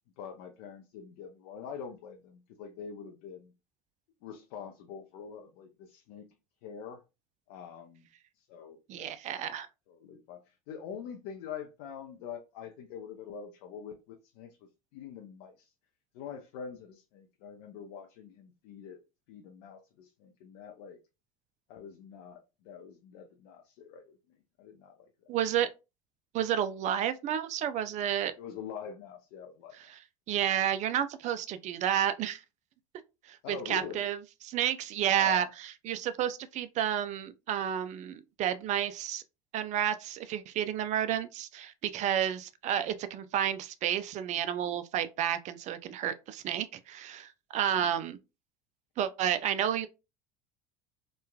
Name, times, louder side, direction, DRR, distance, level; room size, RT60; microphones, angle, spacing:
voice 1, 0.2-3.5 4.2-6.4 6.6-7.0 7.5-8.1 8.4-9.3 9.9-14.6 14.9-15.7 16.1-19.0 19.3-21.0 21.7-25.3 28.4-29.8 33.4-34.1 35.2-35.5 47.8-47.9, left 7 dB, 65° left, 0.5 m, -45 dB
voice 2, 8.9-9.7 25.3-25.7 26.3-28.3 29.9-30.0 30.3-32.4 33.3-34.2 34.4-39.2 39.5-48.2 49.0-49.9, right 10 dB, 40° right, 0.4 m, -31 dB
3.0 x 2.2 x 2.2 m
hypercardioid pair, 80°, 19 cm